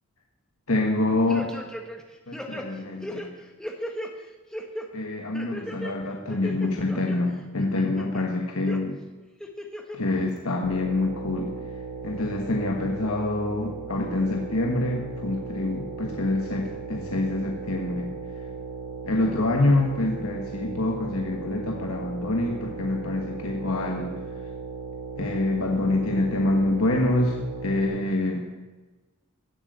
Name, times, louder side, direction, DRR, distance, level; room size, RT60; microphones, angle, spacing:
voice 1, 0.7-1.7 2.3-3.3 4.9-9.0 9.9-11.5 12.0-18.1 19.0-24.2 25.2-28.4, left 2 dB, 70° left, 2 dB, 1.4 m, -26 dB
sound 1, 1.3-2.0 2.3-4.1 4.5-4.9 5.3-5.9 6.3-7.2 7.6-8.2 8.7-8.8 9.4-10.0 10.4-10.5, equal, 5° left, 1.3 m, -36 dB
sound 2, 10.6-27.8, right 4 dB, 60° right, 5.3 m, -37 dB
16.0 x 7.9 x 7.9 m, 1.2 s
head